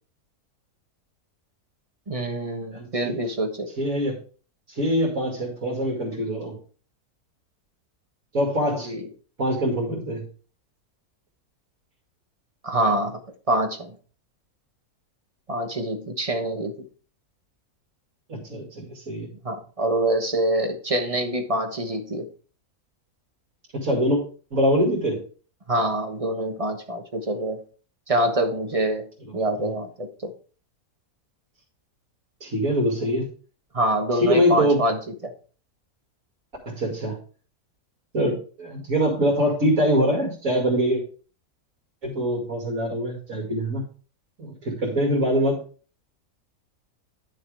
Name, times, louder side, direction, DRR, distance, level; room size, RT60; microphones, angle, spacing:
voice 1, 2.1-3.7 8.9-9.1 12.6-13.2 13.5-13.9 15.5-16.7 19.4-22.3 25.7-27.6 28.1-29.1 29.3-30.3 33.7-35.3, right 1 dB, 25° right, 4 dB, 1.1 m, -25 dB
voice 2, 2.7-3.2 3.8-4.2 4.7-6.6 8.3-8.9 9.4-10.2 18.3-19.3 23.7-24.2 24.5-25.2 29.2-29.7 32.4-33.3 34.1-34.8 36.7-37.2 38.1-41.0 42.0-43.8 44.4-45.6, equal, 60° right, -2 dB, 2.7 m, -24 dB
11.0 x 6.5 x 3.4 m, 0.40 s
omnidirectional pair, 1.6 m